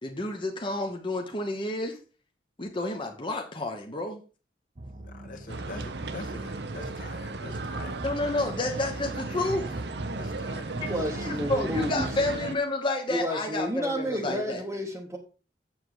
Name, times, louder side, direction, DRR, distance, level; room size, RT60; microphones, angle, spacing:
voice 1, 0.0-2.0 2.6-4.2 8.0-9.8 10.8-14.6, left 2 dB, 30° left, 1.1 m, -30 dB
sound 1, 4.8-12.4, right 1 dB, 40° right, 0.9 m, -39 dB
voice 2, 5.0-8.0 10.2-11.2, left 2 dB, 50° left, 1.6 m, -45 dB
sound 2, 5.5-12.6, right 3 dB, 70° right, 0.9 m, -36 dB
voice 3, 10.8-12.1 13.1-15.2, equal, 15° right, 1.1 m, -31 dB
7.7 x 7.4 x 4.9 m
head